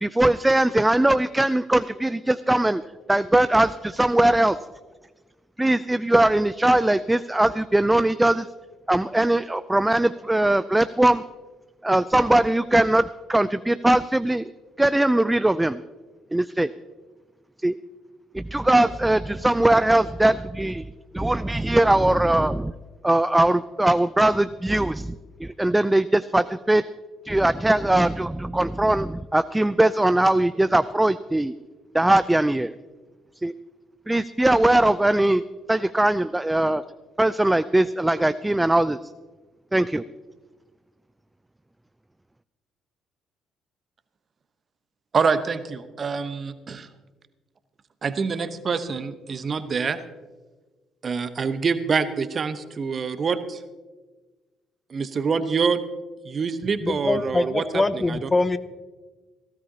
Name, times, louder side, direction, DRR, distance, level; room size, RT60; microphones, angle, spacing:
voice 1, 0.0-2.8 3.1-4.6 5.6-8.5 8.9-11.2 11.8-14.5 14.8-15.8 16.3-16.7 17.6-17.8 18.3-20.8 21.1-22.7 23.0-26.8 27.2-31.5 31.9-32.7 33.4-33.5 34.1-35.4 35.7-36.8 37.2-39.0 39.7-40.1, right 1 dB, 10° right, 14 dB, 0.4 m, -20 dB
voice 2, 45.1-46.9 48.0-50.0 51.0-53.6 54.9-55.8 56.2-58.3, right 5 dB, 40° right, 12 dB, 0.9 m, -26 dB
voice 3, 56.8-58.6, left 3 dB, 25° left, 13 dB, 0.8 m, -23 dB
18.0 x 15.5 x 2.8 m, 1.3 s
hypercardioid pair, 45°, 0 cm